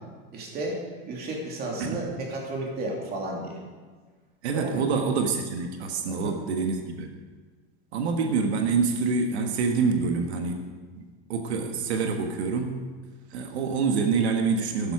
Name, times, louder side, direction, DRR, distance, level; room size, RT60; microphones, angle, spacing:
voice 1, 0.3-3.6 4.5-4.8 6.1-6.4, right 2 dB, 30° right, -1 dB, 3.0 m, -33 dB
voice 2, 4.4-7.1 7.9-10.7 11.0-12.8 13.3-14.9, right 5 dB, 90° right, 4 dB, 1.5 m, -26 dB
12.5 x 12.0 x 4.9 m, 1.5 s
supercardioid pair, 155°, 32 cm